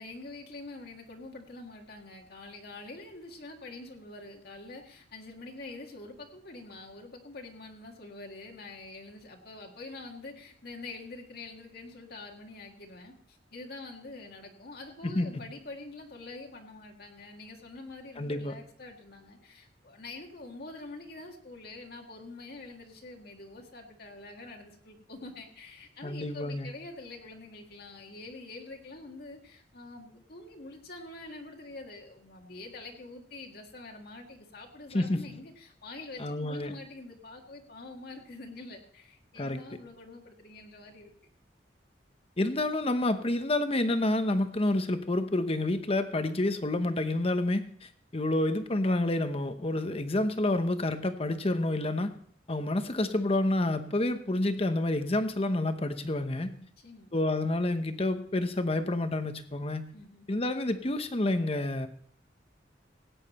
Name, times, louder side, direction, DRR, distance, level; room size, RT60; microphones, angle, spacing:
voice 1, 0.0-41.1 56.6-57.1 59.9-60.3, left 2 dB, 55° left, 1 dB, 1.8 m, -46 dB
voice 2, 15.0-15.4 18.2-18.5 26.0-26.7 34.9-35.4 36.2-36.7 39.4-39.6 42.4-52.1 52.5-56.5 57.1-59.9 60.3-61.9, left 1 dB, 35° left, 9 dB, 1.0 m, -29 dB
17.0 x 9.1 x 4.3 m, 0.62 s
head